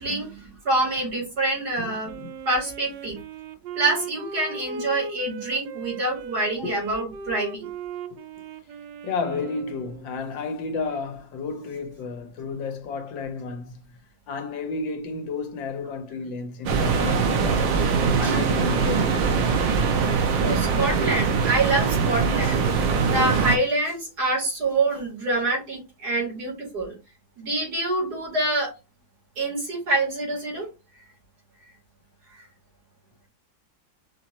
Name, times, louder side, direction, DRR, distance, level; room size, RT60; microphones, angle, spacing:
voice 1, 0.0-2.1 2.5-3.2 3.8-7.7 18.2-18.4 20.4-22.7 23.1-27.0 27.4-28.7 29.4-30.7, right 2 dB, 55° right, 2.8 m, -26 dB
voice 2, 1.8-2.3 3.8-4.0 6.6-6.8 8.1-8.2 9.0-13.8 14.3-17.8 18.2-19.3 26.1-26.2, left 4 dB, 80° left, 1.6 m, -32 dB
Wind instrument woodwind instrument, 2.0-10.2, right 4 dB, 75° right, 1.3 m, -37 dB
sound 1, 16.7-23.6, right 5 dB, 90° right, 1.6 m, -22 dB
5.9 x 2.9 x 2.9 m
omnidirectional pair, 2.0 m